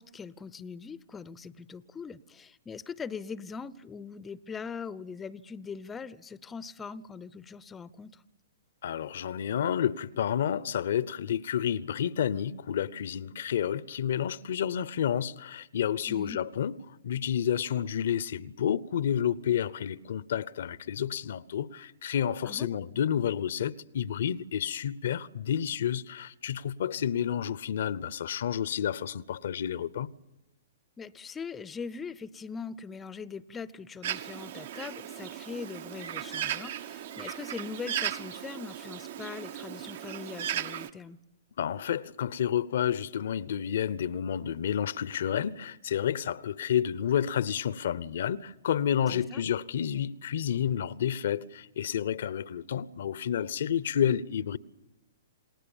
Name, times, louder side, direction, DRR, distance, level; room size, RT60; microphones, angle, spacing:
voice 1, 0.0-8.2 16.1-16.4 22.4-22.7 31.0-41.2 49.1-49.4, left 5 dB, 15° left, 0.7 m, -41 dB
voice 2, 8.8-16.8 17.0-30.1 41.6-54.6, left 9 dB, 65° left, 0.9 m, -30 dB
Bird, 34.0-40.9, right 10 dB, 55° right, 1.3 m, -36 dB
28.5 x 19.0 x 7.2 m
hypercardioid pair, 115°, 0 cm